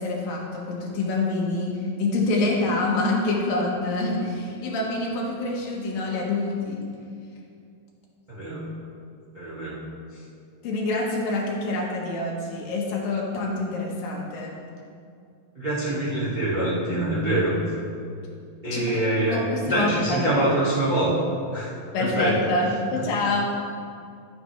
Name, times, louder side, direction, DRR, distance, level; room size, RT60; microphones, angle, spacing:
voice 1, 0.0-6.8 10.6-14.5 18.7-18.8 19.2-20.4 21.9-23.4, left 2 dB, 80° left, -2 dB, 3.1 m, -26 dB
voice 2, 8.3-8.7 9.3-9.8 15.5-17.5 18.6-21.1 21.5-21.7 22.0-22.5, right 1 dB, 15° right, -10 dB, 1.8 m, -25 dB
11.5 x 9.5 x 3.5 m, 2.4 s
omnidirectional pair, 4.0 m